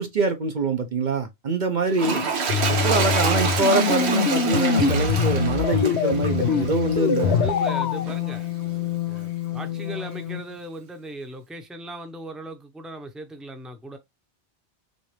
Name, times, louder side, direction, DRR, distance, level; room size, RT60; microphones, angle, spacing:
voice 1, 0.0-2.2 2.7-7.4, right 3 dB, 50° right, 0.8 m, -24 dB
Toilet flush, 1.9-7.4 8.1-8.2, right 5 dB, 85° right, 1.3 m, -27 dB
sound 1, 2.5-8.1, left 6 dB, 90° left, 1.0 m, -24 dB
sound 2, 3.8-10.6, left 15 dB, 45° left, 0.6 m, -30 dB
voice 2, 7.2-14.0, right 1 dB, ahead, 0.7 m, -38 dB
6.2 x 2.5 x 3.3 m
omnidirectional pair, 1.1 m